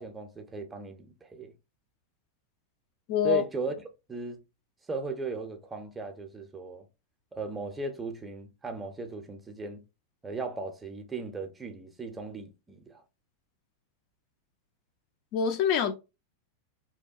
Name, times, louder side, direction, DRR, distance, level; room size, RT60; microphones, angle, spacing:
voice 1, 0.0-1.5 3.2-3.7 4.1-4.4 4.9-6.9 7.3-9.8 10.2-13.0, right 3 dB, 15° right, 0.5 m, -37 dB
voice 2, 3.1-3.4 15.3-15.9, left 8 dB, 40° left, 0.4 m, -25 dB
2.8 x 2.2 x 2.4 m
figure-of-eight pair, 90°, 0 cm